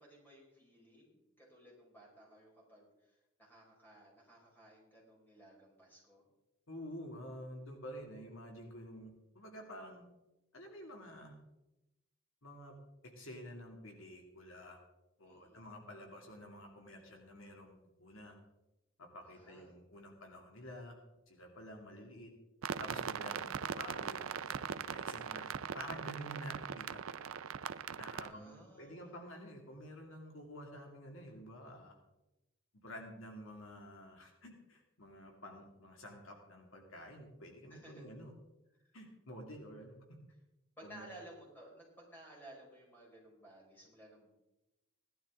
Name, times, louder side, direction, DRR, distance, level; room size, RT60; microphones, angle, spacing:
voice 1, 0.0-6.2 15.2-15.6 19.2-19.7 28.2-29.2 37.7-38.0 38.7-39.0 40.8-44.3, right 1 dB, 10° left, -3 dB, 5.2 m, -57 dB
voice 2, 6.7-10.0 10.5-11.3 12.4-12.7 13.1-14.8 15.2-18.3 19.0-21.0 21.3-22.3 22.8-25.5 25.7-27.1 28.0-31.9 32.8-38.3 38.9-40.0 40.8-41.1, equal, 75° left, 2 dB, 2.4 m, -50 dB
sound 1, 22.6-28.3, right 7 dB, 80° right, 0.5 m, -40 dB
17.5 x 12.0 x 3.8 m, 0.96 s
head